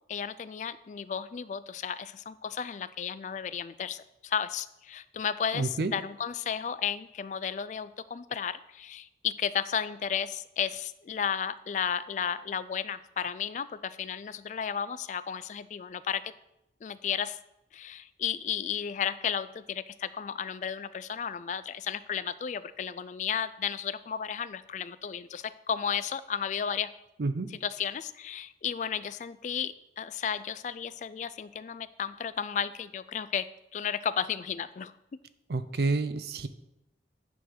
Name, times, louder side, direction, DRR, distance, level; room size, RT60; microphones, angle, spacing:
voice 1, 0.1-16.3 16.8-17.4 17.7-26.9 27.6-33.5 33.7-34.9, left 8 dB, 45° left, 16 dB, 0.3 m, -33 dB
voice 2, 5.5-5.9 27.2-27.5 35.5-36.5, right 3 dB, 60° right, 12 dB, 0.5 m, -29 dB
9.4 x 3.8 x 6.3 m, 0.87 s
head